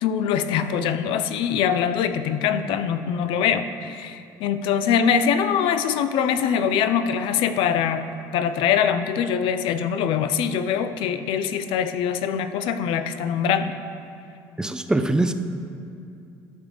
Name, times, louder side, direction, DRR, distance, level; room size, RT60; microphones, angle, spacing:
voice 1, 0.0-8.1 8.3-13.7, left 8 dB, 70° left, 10 dB, 0.4 m, -23 dB
voice 2, 14.6-15.3, right 2 dB, 10° right, 8 dB, 0.4 m, -22 dB
12.0 x 6.3 x 3.4 m, 2.5 s
supercardioid pair, 100°, 9 cm